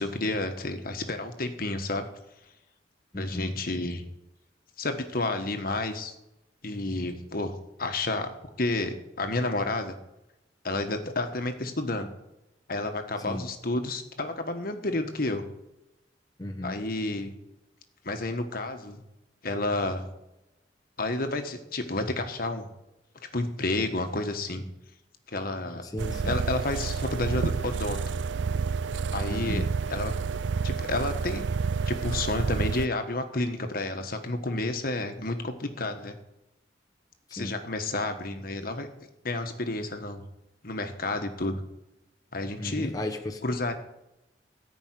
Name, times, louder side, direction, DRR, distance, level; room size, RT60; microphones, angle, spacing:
voice 1, 0.0-2.1 3.2-4.0 4.8-6.1 6.6-10.0 10.6-12.1 12.7-15.4 16.6-17.3 18.0-19.0 19.4-20.1 21.0-22.7 23.3-24.6 25.3-25.9 26.2-28.0 29.1-30.1 30.6-31.5 31.9-36.1 37.3-38.9 39.2-40.2 40.6-41.6 42.3-42.9 43.4-43.7, left 2 dB, 55° left, 7 dB, 1.5 m, -30 dB
voice 2, 3.1-3.5 13.3-13.4 16.4-16.7 25.9-26.4 29.3-29.6 37.4-37.5 42.6-43.4, left 1 dB, 20° left, 2 dB, 1.1 m, -34 dB
sound 1, 26.0-32.9, right 5 dB, 90° right, 0.4 m, -29 dB
14.5 x 5.4 x 9.3 m, 0.92 s
head